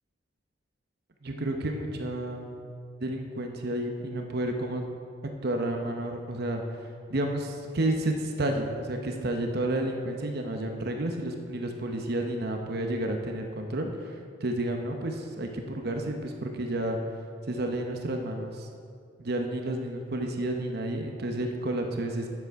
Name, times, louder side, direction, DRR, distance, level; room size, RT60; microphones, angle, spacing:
voice 1, 1.2-2.5 3.0-4.8 5.4-6.6 7.1-17.0 17.5-18.7 19.2-22.3, right 1 dB, 60° right, 3 dB, 0.9 m, -31 dB
9.5 x 7.9 x 4.7 m, 2.3 s
head